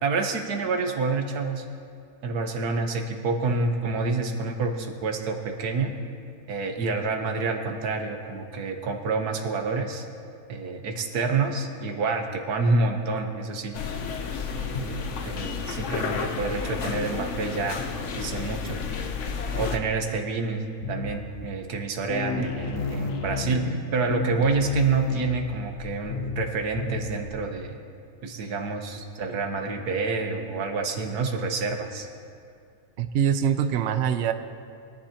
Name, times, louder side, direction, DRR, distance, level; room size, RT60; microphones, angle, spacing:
voice 1, 0.0-1.6 2.2-5.9 6.5-10.0 10.5-14.0 14.5-17.8 18.1-18.8 19.5-20.6 20.9-23.6 23.9-27.8 28.2-32.1, right 4 dB, 85° right, 3 dB, 1.6 m, -28 dB
sound 1, 13.7-19.8, left 5 dB, 60° left, 1.1 m, -31 dB
sound 2, 20.8-21.4 21.8-21.9 22.1-27.4, left 5 dB, 90° left, 1.4 m, -32 dB
voice 2, 33.0-34.3, right 8 dB, 60° right, 9 dB, 0.8 m, -24 dB
23.0 x 10.5 x 2.9 m, 2.4 s
omnidirectional pair, 1.6 m